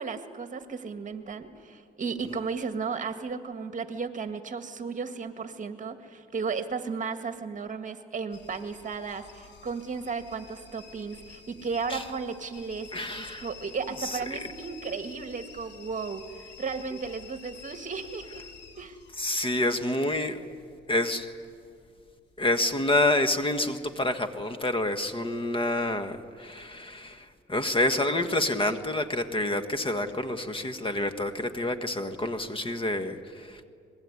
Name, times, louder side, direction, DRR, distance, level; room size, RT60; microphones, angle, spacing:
voice 1, 0.0-18.5 18.8-19.0, right 5 dB, 40° right, 8 dB, 1.9 m, -34 dB
sound 1, 8.3-23.2 23.4-24.1 24.6-25.1 25.5-25.6, left 6 dB, 60° left, 2.9 m, -50 dB
voice 2, 12.9-13.5 14.0-14.5 19.2-20.4 20.9-21.3 22.4-33.7, left 1 dB, 25° left, 9 dB, 1.6 m, -28 dB
25.0 x 21.0 x 9.7 m, 2.3 s
cardioid pair, 90°, 20 cm